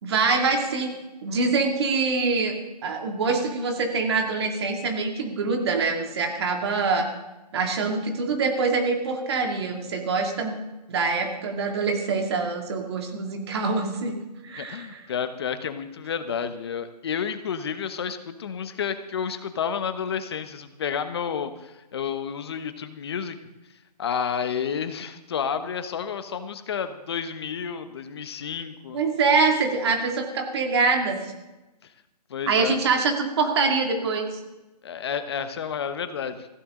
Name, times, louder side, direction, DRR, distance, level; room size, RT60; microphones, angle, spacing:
voice 1, 0.0-0.9 1.2-2.5 2.8-7.1 7.5-10.6 10.9-14.1 14.4-15.0 28.9-31.3 32.5-34.4, right 4 dB, 40° right, 3 dB, 2.4 m, -24 dB
voice 2, 14.6-23.4 24.0-29.0 32.3-32.7 34.8-36.5, left 7 dB, 40° left, 10 dB, 1.1 m, -30 dB
16.5 x 15.5 x 3.8 m, 1.0 s
hypercardioid pair, 165°, 21 cm